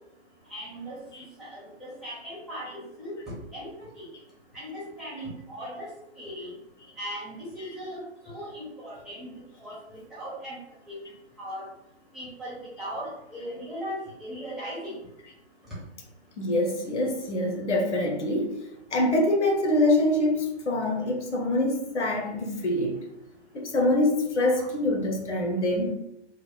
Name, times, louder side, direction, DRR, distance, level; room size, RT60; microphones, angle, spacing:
voice 1, 0.5-1.0 1.4-3.1 3.5-4.1 4.5-5.9 6.2-6.5 7.0-9.3 9.6-10.6 10.9-11.0 11.4-11.7 12.1-15.0 24.6-24.7, equal, ahead, -9 dB, 1.2 m, -38 dB
voice 2, 16.4-18.5 18.9-23.0 23.5-25.9, left 1 dB, 75° left, 1 dB, 1.1 m, -25 dB
3.3 x 2.2 x 4.1 m, 0.85 s
hypercardioid pair, 135°, 35 cm